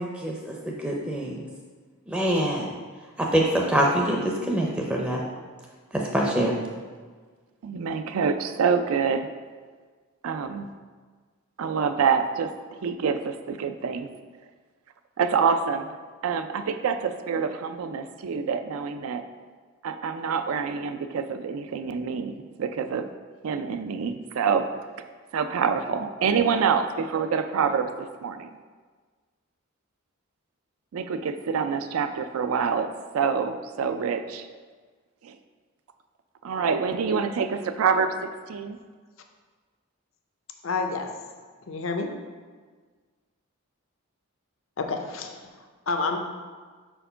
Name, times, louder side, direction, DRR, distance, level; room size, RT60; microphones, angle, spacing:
voice 1, 0.0-1.3 2.1-2.7 3.2-5.2 5.9-6.6, right 1 dB, 5° right, -2 dB, 0.5 m, -25 dB
voice 2, 7.6-9.3 10.2-10.7 11.6-12.5 12.8-14.2 15.2-15.9 16.2-19.2 19.8-23.1 23.4-24.7 25.3-28.5 30.9-34.5 35.2-35.4 36.4-38.8, right 6 dB, 80° right, 9 dB, 0.4 m, -26 dB
voice 3, 40.6-41.1 41.7-42.1 44.8-45.4 45.9-46.2, left 4 dB, 70° left, 4 dB, 0.6 m, -28 dB
4.5 x 4.5 x 5.5 m, 1.5 s
head